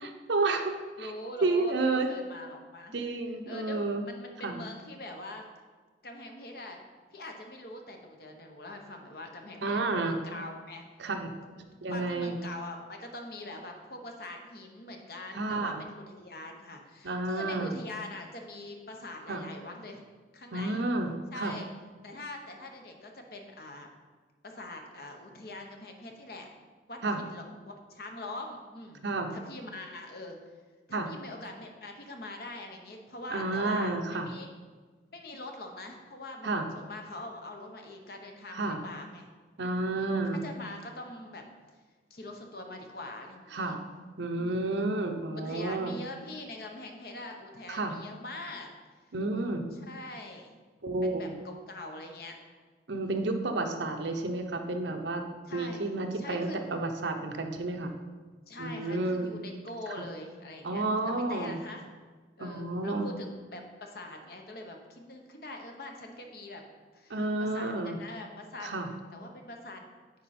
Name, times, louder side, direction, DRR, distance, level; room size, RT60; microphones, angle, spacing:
voice 1, 0.0-0.7 1.0-1.1 1.4-2.1 2.9-4.0 4.4-4.6 9.6-10.2 11.0-11.3 11.8-12.4 15.3-15.8 17.0-17.8 19.3-19.4 20.5-21.5 27.0-27.2 29.0-29.3 30.9-31.1 33.3-34.3 36.4-36.6 38.5-38.8 39.6-40.4 43.5-43.8 44.2-45.9 47.7-48.0 49.1-49.6 50.8-51.3 52.9-55.2 55.5-57.9 58.6-59.3 60.0-60.1 60.6-61.6 62.4-63.1 67.1-68.0 68.6-68.9, right 2 dB, 70° right, 5 dB, 0.8 m, -30 dB
voice 2, 1.0-2.9 3.5-5.4 6.0-6.8 7.1-10.8 11.7-20.0 20.3-20.8 21.3-21.7 22.0-23.9 24.4-26.5 26.9-29.0 29.3-30.4 30.9-34.5 35.1-39.3 39.8-41.4 42.1-43.8 44.4-44.8 45.4-48.7 49.7-50.5 51.0-52.4 53.0-53.3 55.5-56.8 58.5-61.9 62.4-66.6 66.9-68.7 69.1-69.8, left 2 dB, 55° left, 3 dB, 1.0 m, -43 dB
9.5 x 4.5 x 4.3 m, 1.4 s
head